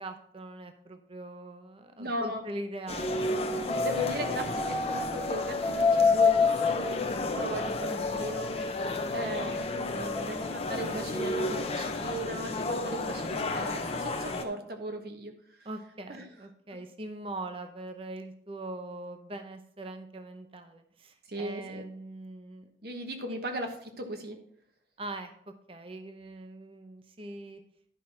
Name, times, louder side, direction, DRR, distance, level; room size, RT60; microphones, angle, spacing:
voice 1, 0.0-3.6 7.3-7.7 15.6-22.7 23.3-23.4 25.0-27.6, right 2 dB, 30° right, 7 dB, 0.7 m, -42 dB
voice 2, 2.0-2.4 3.8-8.5 9.1-15.3 16.1-16.2 21.3-21.8 22.8-24.4, right 1 dB, 55° right, 5 dB, 1.3 m, -37 dB
sound 1, 2.9-14.4, left 3 dB, 35° left, 0.7 m, -34 dB
sound 2, 3.0-10.7 11.0-11.6, left 4 dB, 5° left, 1.1 m, -29 dB
11.0 x 5.7 x 4.3 m, 0.67 s
head